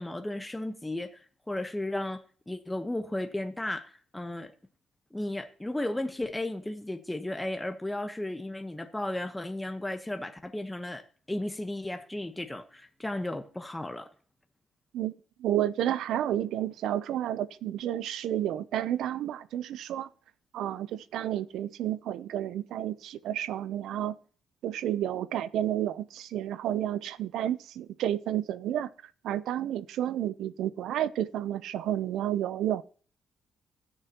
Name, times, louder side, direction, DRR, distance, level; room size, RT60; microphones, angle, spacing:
voice 1, 0.0-4.5 5.1-14.1, left 1 dB, 10° left, 1.2 m, -34 dB
voice 2, 15.4-20.1 20.5-24.2 24.6-32.8, right 11 dB, 80° right, 0.6 m, -31 dB
17.0 x 6.7 x 3.0 m
cardioid pair, 90°, 0 cm